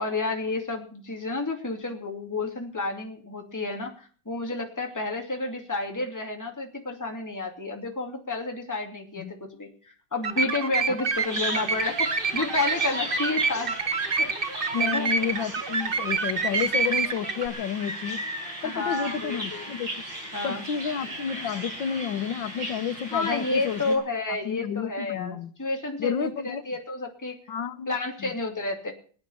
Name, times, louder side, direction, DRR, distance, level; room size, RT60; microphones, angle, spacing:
voice 1, 0.0-14.3 14.8-15.1 18.6-19.7 20.3-20.6 23.1-27.4 27.9-28.9, left 3 dB, 10° left, 2 dB, 2.6 m, -31 dB
sound 1, 10.2-17.5, right 4 dB, 35° right, 1.2 m, -27 dB
Bird vocalization bird call bird song, 11.1-23.9, right 1 dB, 70° right, 7.5 m, -37 dB
voice 2, 14.7-18.2 18.6-19.9 20.4-24.0 24.4-25.5 26.0-26.6 27.5-28.3, left 8 dB, 80° left, 11 dB, 1.8 m, -31 dB
20.0 x 9.7 x 7.0 m, 0.43 s
omnidirectional pair, 2.0 m